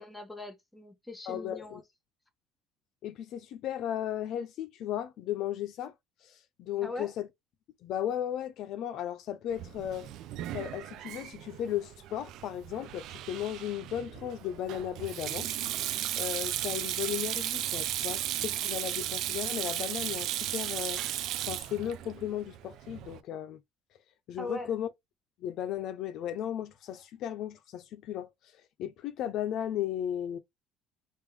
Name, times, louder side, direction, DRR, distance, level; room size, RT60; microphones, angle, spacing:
voice 1, 0.0-1.8 6.8-7.1 24.4-24.7, left 2 dB, 10° left, 1.1 m, -40 dB
voice 2, 1.3-1.8 3.0-5.9 6.2-7.3 7.8-10.1 10.5-15.5 16.2-21.0 21.5-23.6 24.3-24.9 25.4-28.3 28.8-30.4, left 11 dB, 60° left, 0.5 m, -35 dB
Sink (filling or washing), 9.5-23.2, right 12 dB, 65° right, 0.4 m, -35 dB
3.5 x 2.5 x 3.2 m
cardioid pair, 125°, 0 cm